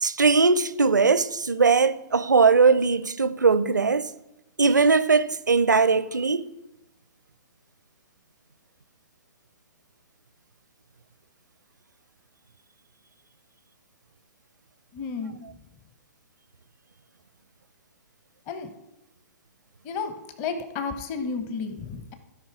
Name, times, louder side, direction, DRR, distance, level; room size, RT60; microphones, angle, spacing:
voice 1, 0.0-4.1 4.6-6.5, right 4 dB, 80° right, 0.6 m, -20 dB
voice 2, 14.9-15.4 18.5-18.7 19.8-22.1, left 5 dB, 30° left, 1.1 m, -32 dB
16.0 x 5.6 x 4.8 m
figure-of-eight pair, 115°, 10 cm